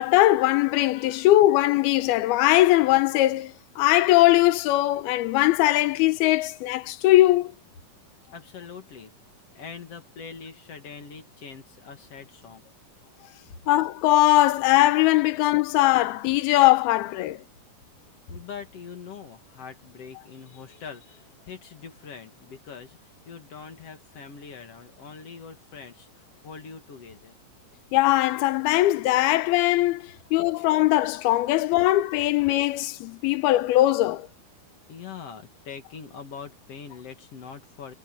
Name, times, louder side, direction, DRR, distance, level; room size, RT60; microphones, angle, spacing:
voice 1, 0.0-7.5 13.7-17.4 27.9-34.3, left 16 dB, 80° left, 2.7 m, -20 dB
voice 2, 0.9-1.3 8.3-9.1 9.5-12.6 18.3-27.4 34.9-37.9, left 6 dB, 50° left, 2.3 m, -43 dB
omnidirectional pair, 4.4 m